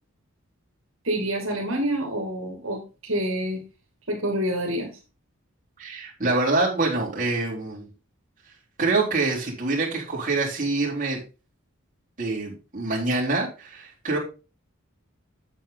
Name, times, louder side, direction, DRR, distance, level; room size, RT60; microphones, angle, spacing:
voice 1, 1.0-3.6 4.1-4.9, right 1 dB, 75° right, 0 dB, 2.6 m, -27 dB
voice 2, 5.8-7.9 8.8-11.2 12.2-14.2, right 3 dB, 40° right, -4 dB, 3.9 m, -25 dB
8.3 x 7.8 x 3.8 m, 0.31 s
head